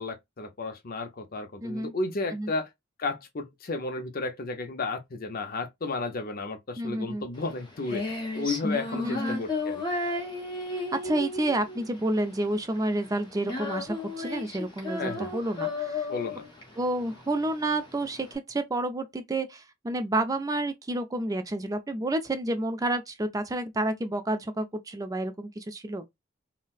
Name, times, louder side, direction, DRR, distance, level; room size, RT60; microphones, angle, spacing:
voice 1, 0.0-2.7 3.0-8.1 8.3-9.8 15.0-15.3 16.1-16.4, left 3 dB, 45° left, 0.6 m, -33 dB
voice 2, 1.6-1.9 2.3-2.5 6.8-7.2 8.9-9.4 11.0-16.1 16.8-26.0, right 1 dB, 20° right, 0.4 m, -30 dB
Female singing, 7.4-18.3, left 3 dB, 25° left, 1.1 m, -34 dB
3.9 x 2.1 x 2.4 m
head